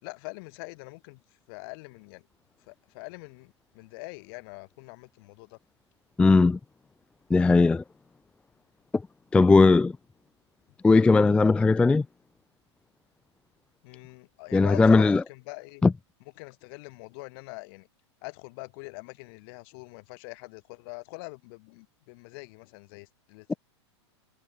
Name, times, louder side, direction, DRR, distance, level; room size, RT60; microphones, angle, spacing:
voice 1, 0.0-1.2 1.5-2.3 2.7-5.6 13.8-15.8 16.4-17.9 18.2-23.6, left 29 dB, 55° left, 3.4 m, -44 dB
voice 2, 6.2-6.6 7.3-7.8 9.3-9.9 10.8-12.1 14.5-15.2 15.8-15.9, left 3 dB, 5° left, 0.3 m, -18 dB
hypercardioid pair, 120°, 15 cm